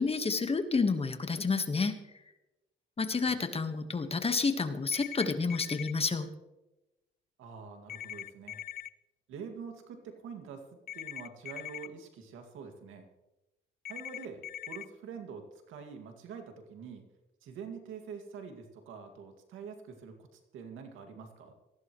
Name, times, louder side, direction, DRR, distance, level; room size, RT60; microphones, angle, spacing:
voice 1, 0.0-2.0 3.0-6.3, left 4 dB, 30° left, 8 dB, 1.5 m, -30 dB
sound 1, 4.9-5.9 7.9-8.9 10.9-11.9 13.8-14.9, left 11 dB, 50° left, 0.5 m, -41 dB
voice 2, 7.4-8.6 9.3-13.1 13.9-17.0 17.4-21.5, right 6 dB, 90° right, 5 dB, 2.2 m, -46 dB
19.0 x 15.0 x 3.2 m, 0.97 s
cardioid pair, 90°, 20 cm